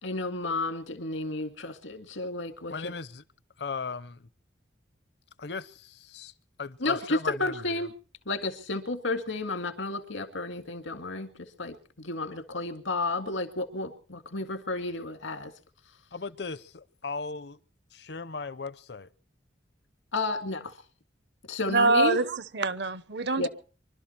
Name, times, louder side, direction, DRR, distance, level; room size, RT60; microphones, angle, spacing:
voice 1, 0.0-2.9 6.8-7.9 8.3-15.5 20.1-20.8 21.5-22.2 23.4-23.5, left 2 dB, 85° left, 2.1 m, -32 dB
voice 2, 2.7-3.2 3.6-4.3 5.4-6.3 6.6-7.8 16.1-17.6 17.9-19.1, left 4 dB, 55° left, 0.7 m, -37 dB
voice 3, 21.7-23.5, right 3 dB, 60° right, 0.8 m, -25 dB
25.0 x 12.5 x 4.5 m
head